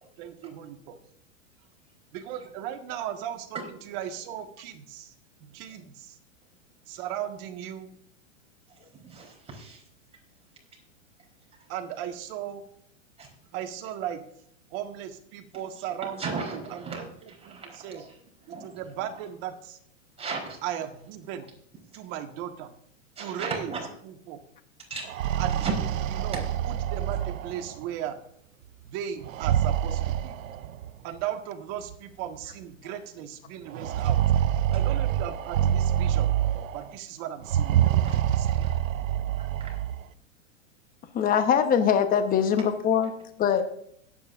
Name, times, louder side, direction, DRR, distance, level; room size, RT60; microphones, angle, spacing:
voice 1, 0.2-1.0 2.1-3.6 3.8-5.1 5.4-6.2 6.9-7.9 11.7-12.6 13.5-14.2 14.7-18.0 18.5-19.8 20.6-21.5 21.9-22.7 23.2-23.7 24.0-24.4 25.4-25.7 26.2-28.2 28.8-30.4 31.0-34.2 34.7-38.7, right 10 dB, 45° right, 5 dB, 1.7 m, -37 dB
voice 2, 8.7-9.8 13.2-13.3 16.0-18.2 18.4-19.1 20.2-20.6 23.2-23.9 24.9-25.1 25.6-25.7 38.0-38.2 38.6-38.8 39.4-39.7, right 4 dB, 15° right, -1 dB, 4.0 m, -36 dB
sound 1, 25.0-27.9 29.2-30.9 31.9-32.0 32.4-32.5 33.7-36.9 37.4-40.0, right 10 dB, 80° right, 0.7 m, -26 dB
voice 3, 41.1-43.1 43.4-43.6, left 8 dB, 20° left, 8 dB, 1.1 m, -22 dB
22.0 x 9.1 x 2.6 m, 0.69 s
hypercardioid pair, 120°, 39 cm